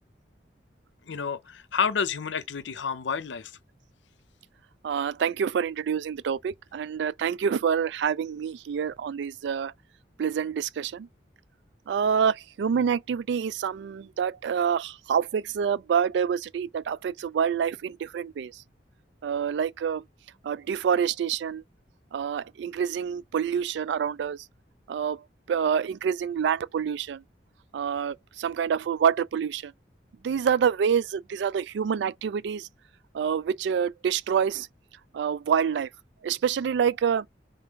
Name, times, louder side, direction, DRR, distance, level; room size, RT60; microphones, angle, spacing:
voice 1, 1.1-3.5, left 6 dB, 85° left, 0.6 m, -29 dB
voice 2, 4.8-9.7 10.2-11.1 11.9-18.5 19.2-20.0 20.4-21.6 22.1-24.4 24.9-25.2 25.5-27.2 27.7-29.7 30.2-32.6 33.1-34.7 35.1-35.9 36.2-37.3, right 7 dB, 75° right, 0.3 m, -27 dB
3.8 x 3.4 x 3.6 m
head